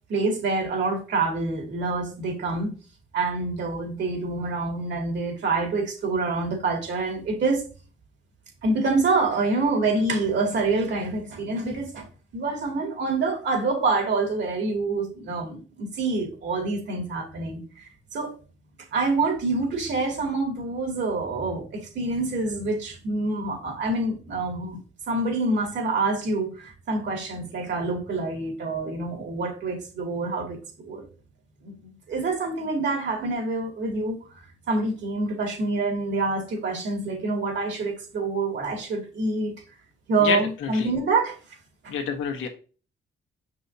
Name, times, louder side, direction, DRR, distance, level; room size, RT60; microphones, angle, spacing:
voice 1, 0.1-2.7 3.1-7.7 8.6-12.1 12.3-18.3 18.9-24.8 25.1-30.6 30.8-31.0 31.6-31.7 32.1-34.2 34.7-39.5 40.1-41.4 41.8-41.9, right 3 dB, 65° right, 2.6 m, -26 dB
voice 2, 40.2-40.9 41.9-42.5, left 6 dB, 90° left, 1.5 m, -28 dB
6.9 x 5.5 x 2.8 m
cardioid pair, 90°, 20 cm